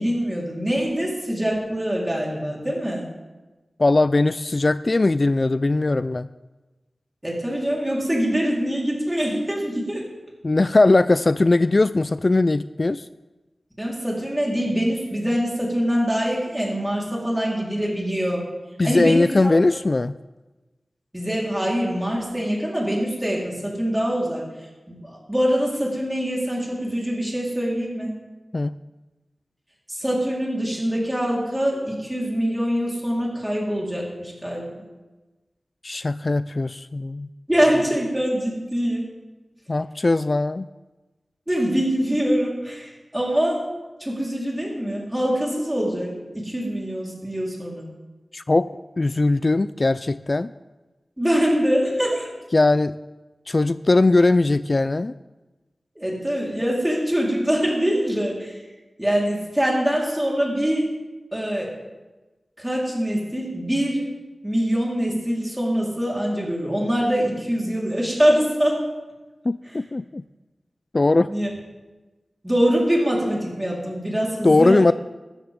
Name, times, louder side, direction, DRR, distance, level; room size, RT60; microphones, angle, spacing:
voice 1, 0.0-3.0 7.2-10.0 13.8-18.4 18.8-19.5 21.1-24.4 24.9-28.1 29.9-34.7 37.5-39.0 41.5-43.6 44.0-47.9 51.2-52.3 56.0-58.5 59.0-60.9 61.3-61.7 62.6-64.1 64.4-68.8 71.3-71.5 72.4-74.9, equal, 15° right, -3 dB, 4.1 m, -24 dB
voice 2, 3.8-6.3 10.4-13.1 18.8-20.1 28.5-28.8 35.8-37.3 39.7-40.7 48.3-48.7 49.0-50.5 52.5-53.0 53.5-55.1 69.4-70.2 70.9-71.3 74.4-74.9, left 2 dB, 45° left, 14 dB, 0.3 m, -19 dB
15.0 x 13.5 x 3.7 m, 1.2 s
wide cardioid pair, 65°, 0 cm